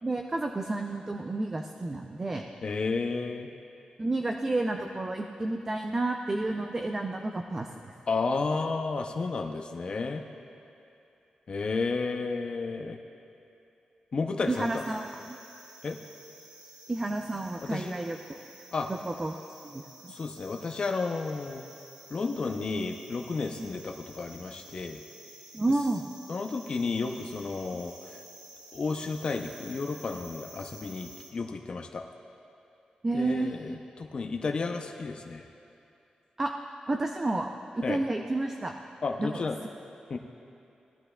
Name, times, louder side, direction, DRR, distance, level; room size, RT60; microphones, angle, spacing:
voice 1, 0.0-2.4 4.0-7.9 14.5-15.4 16.9-18.4 18.9-19.3 19.6-20.1 23.6-23.8 25.5-26.1 33.0-33.6 36.4-36.5 36.9-37.5 37.8-38.7 39.2-39.4, right 2 dB, 20° right, 3 dB, 0.4 m, -31 dB
voice 2, 2.6-3.5 8.1-10.2 11.5-13.0 14.1-14.8 15.8-16.0 17.6-17.9 18.7-18.9 20.1-21.6 22.1-25.0 26.3-28.2 28.7-32.1 33.1-35.4 37.8-38.0 39.0-39.6 40.1-40.2, left 4 dB, 40° left, 3 dB, 0.5 m, -32 dB
sound 1, 14.4-31.3, right 1 dB, 50° right, 1.9 m, -51 dB
18.0 x 12.0 x 2.3 m, 2.7 s
wide cardioid pair, 170°, 2 cm